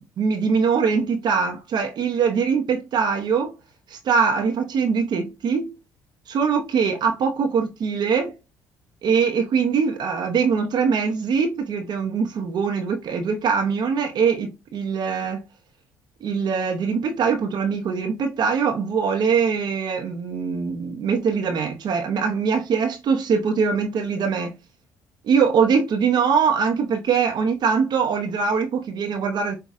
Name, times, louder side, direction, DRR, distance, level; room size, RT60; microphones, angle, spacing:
voice 1, 0.0-3.5 3.9-5.7 6.3-8.3 9.0-15.4 16.2-24.5 25.2-29.6, right 6 dB, 55° right, 0.7 m, -22 dB
5.5 x 2.3 x 2.3 m
supercardioid pair, 65°, 9 cm